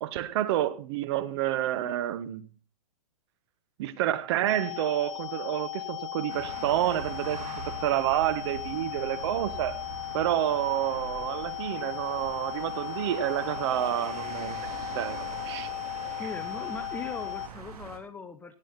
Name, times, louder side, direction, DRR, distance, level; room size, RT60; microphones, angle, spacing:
voice 1, 0.0-2.4 3.8-9.8 10.1-14.7 14.9-15.7, right 12 dB, 45° right, 1.3 m, -29 dB
sound 1, 4.5-17.5, left 15 dB, 55° left, 0.7 m, -37 dB
sound 2, 6.3-18.0, right 6 dB, 70° right, 3.1 m, -42 dB
voice 2, 16.0-18.6, left 4 dB, 10° left, 0.6 m, -40 dB
17.0 x 9.0 x 4.2 m
hypercardioid pair, 140°, 20 cm